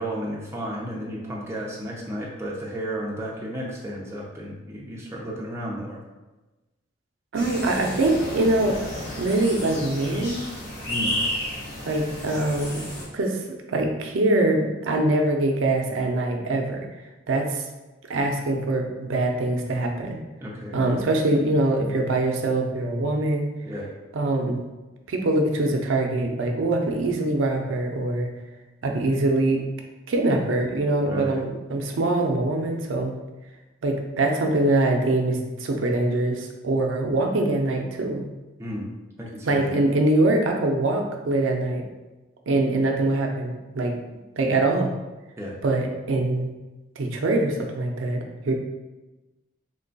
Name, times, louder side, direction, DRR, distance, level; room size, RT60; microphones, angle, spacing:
voice 1, 0.0-6.0 10.9-11.1 20.4-20.8 23.6-23.9 31.0-31.4 38.6-38.9 39.2-39.8 45.4-45.6, right 1 dB, 15° right, -3 dB, 0.5 m, -33 dB
sound 1, 7.3-13.0, left 1 dB, 50° left, 1.0 m, -32 dB
voice 2, 7.3-8.8 9.2-10.4 11.8-12.8 13.1-16.8 17.3-17.7 18.1-20.2 20.7-23.5 24.1-24.6 25.1-28.3 28.8-29.6 30.1-33.1 33.8-38.2 39.4-41.8 42.5-43.9 44.4-44.9 45.6-46.5 47.0-48.5, right 2 dB, 85° right, 2 dB, 0.5 m, -23 dB
3.1 x 2.2 x 3.9 m, 1.1 s
head